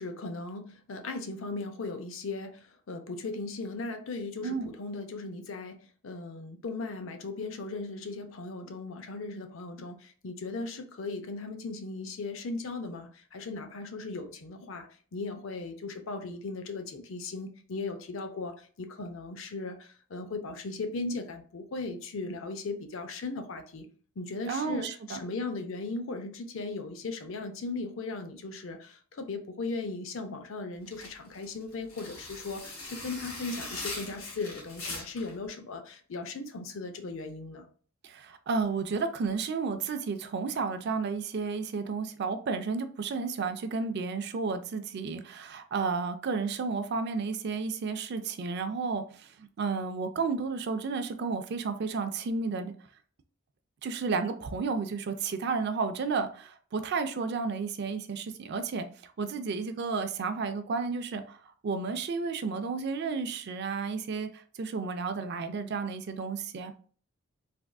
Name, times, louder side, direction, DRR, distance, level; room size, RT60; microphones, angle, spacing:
voice 1, 0.0-23.9 24.2-37.7, left 3 dB, 65° left, 0.5 m, -37 dB
voice 2, 4.4-4.7 24.5-25.2 38.0-52.7 53.8-66.7, right 4 dB, 50° right, 0.4 m, -32 dB
sound 1, 30.9-35.3, left 2 dB, 85° left, 1.4 m, -41 dB
3.4 x 2.5 x 2.3 m
head